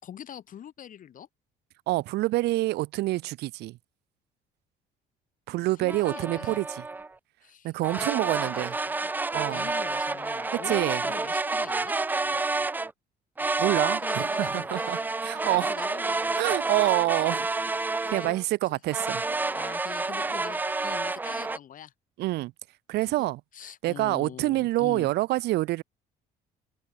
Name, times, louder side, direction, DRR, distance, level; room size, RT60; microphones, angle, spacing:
voice 1, 0.0-1.3 5.8-6.6 7.4-8.9 9.4-11.9 14.0-15.1 15.3-16.4 18.0-18.4 18.7-18.8 19.5-21.9 23.0-25.1, left 10 dB, 55° left, 3.5 m, -44 dB
voice 2, 1.9-3.8 5.5-6.8 7.6-8.8 9.3-9.7 10.7-11.0 13.6-15.7 16.4-17.5 18.1-19.2 22.2-22.5 22.9-23.4 23.8-25.8, right 18 dB, 80° right, 0.9 m, -27 dB
sound 1, 5.9-7.1 7.8-12.9 13.4-18.4 18.9-21.6, right 3 dB, 10° right, 0.3 m, -29 dB
open air
cardioid pair, 110°, 17 cm